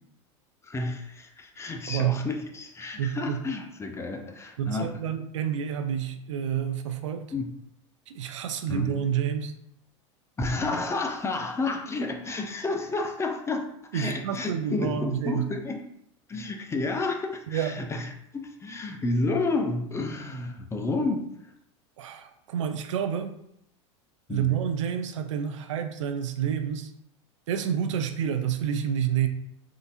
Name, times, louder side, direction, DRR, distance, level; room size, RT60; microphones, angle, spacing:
voice 1, 0.6-4.9 7.3-7.5 8.7-8.9 10.4-15.8 16.3-21.5 24.3-24.5, left 3 dB, 15° left, 4 dB, 0.5 m, -31 dB
voice 2, 1.9-2.2 3.0-3.4 4.6-7.3 8.1-9.5 13.9-15.5 17.5-17.8 22.0-23.3 24.3-26.9 27.5-29.3, right 9 dB, 80° right, 8 dB, 0.4 m, -29 dB
3.7 x 2.6 x 2.5 m, 0.75 s
hypercardioid pair, 95°, 16 cm